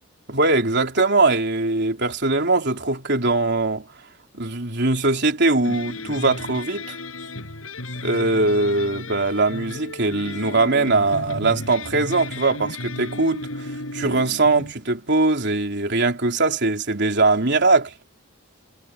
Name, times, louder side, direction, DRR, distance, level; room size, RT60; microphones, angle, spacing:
voice 1, 0.3-3.8 4.3-7.0 8.0-17.9, right 3 dB, 55° right, 3.7 m, -21 dB
sound 1, 5.6-14.7, left 2 dB, 75° left, 7.0 m, -34 dB
head